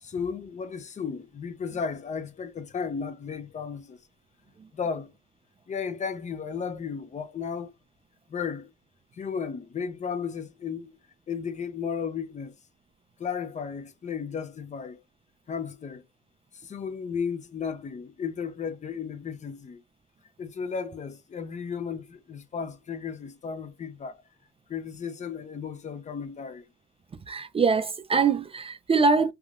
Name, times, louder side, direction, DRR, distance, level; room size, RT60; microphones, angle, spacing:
voice 1, 0.0-4.0 4.7-5.1 5.7-7.7 8.3-8.7 9.1-10.9 11.3-12.5 13.2-15.0 15.5-16.0 16.5-19.8 20.4-24.2 24.7-26.6, left 6 dB, 35° left, 0.5 m, -34 dB
voice 2, 27.3-29.3, right 4 dB, 30° right, 0.4 m, -23 dB
3.5 x 2.3 x 2.4 m
cardioid pair, 90°, 20 cm